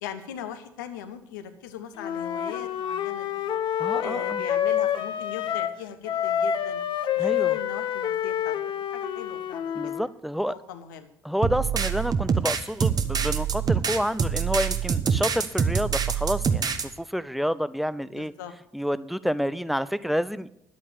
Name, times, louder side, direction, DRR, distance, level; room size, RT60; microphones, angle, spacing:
voice 1, 0.0-3.5 4.0-6.8 7.1-9.9 10.5-11.1 13.5-13.8 18.1-18.5, left 9 dB, 75° left, 9 dB, 1.1 m, -40 dB
Wind instrument woodwind instrument, 2.0-5.8 6.1-10.1, left 10 dB, 55° left, 1.0 m, -27 dB
voice 2, 3.8-4.4 7.2-7.6 9.7-10.6 11.2-18.3 18.7-20.5, equal, ahead, 17 dB, 0.6 m, -29 dB
sound 1, 11.4-16.9, right 6 dB, 40° right, 1.2 m, -25 dB
11.0 x 8.5 x 6.9 m, 0.78 s
figure-of-eight pair, 50°, 10 cm